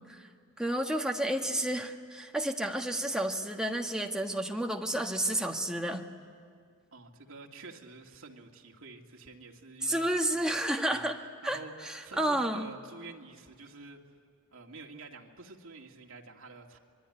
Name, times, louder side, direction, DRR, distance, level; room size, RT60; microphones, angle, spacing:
voice 1, 0.6-6.0 9.8-11.2 11.4-12.7, right 1 dB, 5° right, 2 dB, 1.6 m, -31 dB
voice 2, 6.9-10.1 10.4-10.6 10.8-11.0 11.4-11.7 12.0-14.0 14.5-16.8, right 3 dB, 75° right, 1 dB, 2.5 m, -48 dB
26.0 x 23.0 x 10.0 m, 2.1 s
head